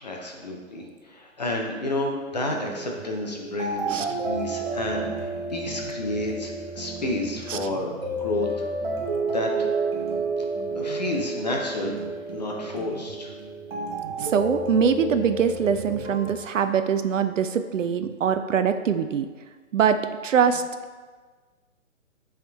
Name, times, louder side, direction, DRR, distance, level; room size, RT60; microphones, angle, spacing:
voice 1, 0.0-8.6 9.2-9.7 10.7-11.9 12.3-13.3, left 2 dB, 30° left, 0 dB, 0.6 m, -30 dB
sound 1, 2.3-16.3, right 3 dB, 45° right, 1.0 m, -31 dB
voice 2, 14.2-19.3 19.7-20.6, right 7 dB, 65° right, 9 dB, 0.5 m, -23 dB
8.7 x 3.6 x 3.4 m, 1.4 s
hypercardioid pair, 170°, 41 cm